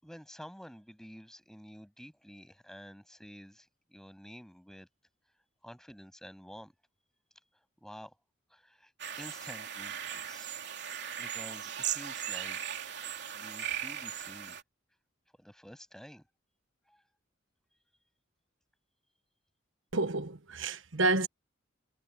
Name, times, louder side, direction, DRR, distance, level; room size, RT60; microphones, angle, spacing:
voice 1, 0.0-4.9 5.6-6.7 7.8-8.1 8.5-8.9 9.2-12.6 13.3-14.6 15.4-16.2 16.9-17.0, equal, 5° left, 7.4 m, -50 dB
sound 1, 9.0-14.6, right 9 dB, 60° right, 3.4 m, -38 dB
voice 2, 19.9-21.3, right 3 dB, 80° right, 1.3 m, -29 dB
head